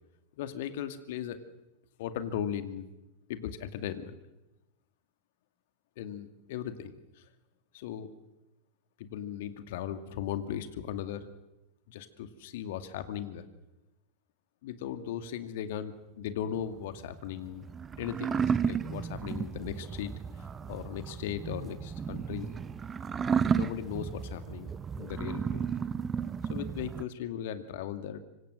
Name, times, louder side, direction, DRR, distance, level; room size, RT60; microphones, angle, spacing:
voice 1, 0.4-1.4 2.0-2.8 3.3-4.1 6.0-6.9 7.7-8.1 9.0-11.3 11.9-13.5 14.6-17.6 18.0-20.1 20.4-22.5 23.5-24.7 25.0-25.7 26.5-28.2, left 9 dB, 55° left, 9 dB, 2.3 m, -37 dB
sound 1, 16.6-27.0, right 6 dB, 20° right, 0.9 m, -33 dB
25.5 x 25.0 x 6.6 m, 0.98 s
figure-of-eight pair, 90°, 0 cm